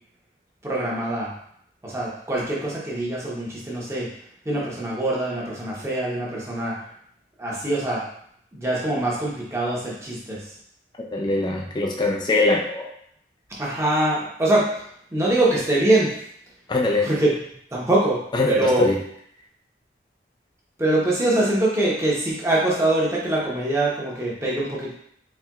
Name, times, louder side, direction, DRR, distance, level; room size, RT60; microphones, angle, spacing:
voice 1, 0.6-1.3 1.8-4.1 4.4-6.8 7.4-8.0 8.5-10.4 13.6-14.7 15.1-16.1 17.0-17.3 17.7-18.2 18.4-18.9 20.8-24.9, right 1 dB, 15° right, -5 dB, 0.9 m, -23 dB
voice 2, 11.1-12.9 16.7-17.1 18.3-19.0, left 2 dB, 25° left, 0 dB, 0.4 m, -22 dB
4.4 x 3.2 x 2.3 m, 0.69 s
head